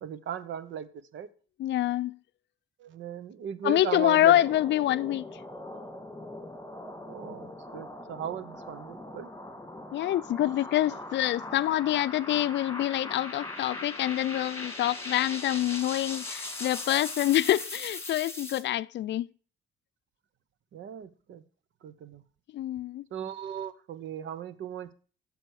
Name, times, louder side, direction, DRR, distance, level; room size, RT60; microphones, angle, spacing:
voice 1, 0.0-1.3 2.8-4.4 7.1-9.3 20.7-21.4 21.8-22.2 23.1-24.9, right 9 dB, 70° right, 0.9 m, -37 dB
voice 2, 1.6-2.1 3.6-5.2 9.9-19.3 22.5-23.0, left 13 dB, 65° left, 0.4 m, -26 dB
sound 1, 4.1-18.6, left 2 dB, 15° left, 1.9 m, -40 dB
9.0 x 6.9 x 4.8 m
cardioid pair, 90°, 20 cm